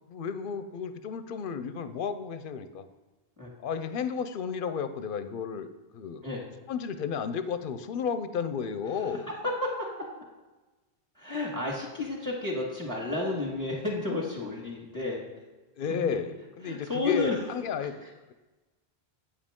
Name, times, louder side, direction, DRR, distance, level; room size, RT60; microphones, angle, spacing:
voice 1, 0.1-2.8 3.6-5.7 5.9-6.3 6.7-9.3 15.8-18.3, left 6 dB, 60° left, 11 dB, 0.7 m, -33 dB
voice 2, 9.4-9.9 11.2-15.2 16.0-16.2 16.7-17.4, left 2 dB, 20° right, -4 dB, 1.7 m, -31 dB
8.6 x 7.4 x 3.6 m, 1.2 s
omnidirectional pair, 1.1 m